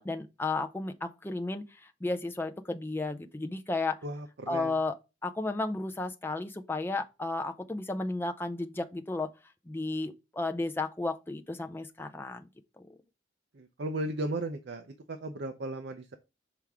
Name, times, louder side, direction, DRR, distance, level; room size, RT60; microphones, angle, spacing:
voice 1, 0.0-4.0 4.5-5.0 5.2-9.3 9.7-12.5 12.8-13.0, left 2 dB, 10° left, 0.5 m, -33 dB
voice 2, 4.0-4.7 13.5-16.2, right 1 dB, 60° right, 0.6 m, -36 dB
5.8 x 3.5 x 4.8 m
head